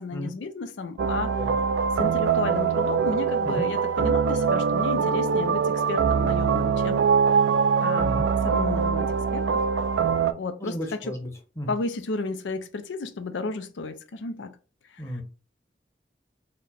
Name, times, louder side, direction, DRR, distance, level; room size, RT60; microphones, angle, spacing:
voice 1, 0.0-1.3 2.0-7.0 7.8-8.1 8.4-9.6 10.4-11.1 11.7-14.6 14.9-15.2, left 3 dB, 90° left, 0.5 m, -33 dB
sound 1, 1.0-10.3, right 6 dB, 80° right, 0.4 m, -23 dB
voice 2, 10.6-11.3 11.6-11.7 15.0-15.2, equal, 15° left, 0.9 m, -33 dB
4.2 x 2.1 x 4.1 m
head